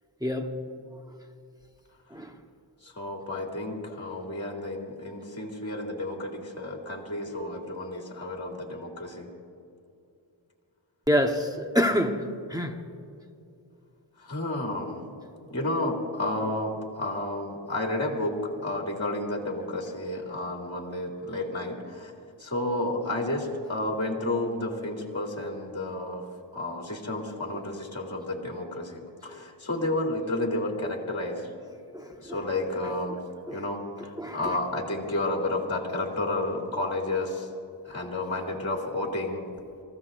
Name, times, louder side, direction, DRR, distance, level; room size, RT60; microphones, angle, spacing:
voice 1, 0.2-0.5 2.1-2.3 11.1-12.2 12.5-12.8 31.9-32.1 33.5-33.6 34.2-34.4, equal, 10° right, 1.2 m, -26 dB
voice 2, 2.8-9.3 14.2-15.0 15.5-22.1 22.4-26.2 26.5-31.5 32.2-33.2 33.5-37.5 37.8-39.4, left 2 dB, 35° left, 2.6 m, -31 dB
27.5 x 15.0 x 2.6 m
cardioid pair, 60°, 44 cm